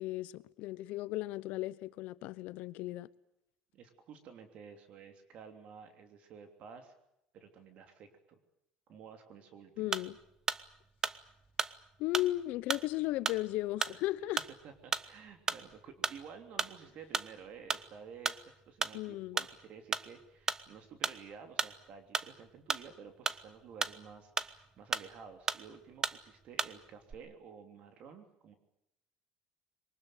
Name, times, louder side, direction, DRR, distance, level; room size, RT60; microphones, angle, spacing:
voice 1, 0.0-3.1 9.8-10.2 12.0-14.4 18.9-19.4, left 16 dB, 70° left, 0.9 m, -35 dB
voice 2, 3.7-6.9 7.3-8.4 8.9-9.9 14.6-28.5, right 6 dB, 55° right, 3.1 m, -52 dB
sound 1, 9.9-10.2 10.5-10.7 11.0-11.7 12.1-12.4 12.7-12.9 13.3-13.4 13.8-14.0 14.4-14.6 14.9-15.1 15.5-15.7 16.0-16.3 16.6-16.8 17.1-17.3 17.7-17.9 18.2-18.4 18.8-19.0 19.4-19.6 19.9-20.1 20.5-20.7 21.0-21.2 21.6-21.8 22.1-22.3 22.7-23.4 23.8-24.0 24.4-24.5 24.9-25.2 25.5-25.7 26.0-26.2 26.6-26.8 27.0-27.1, right 4 dB, 20° right, 0.9 m, -34 dB
23.0 x 19.5 x 9.2 m
cardioid pair, 130°, 3 cm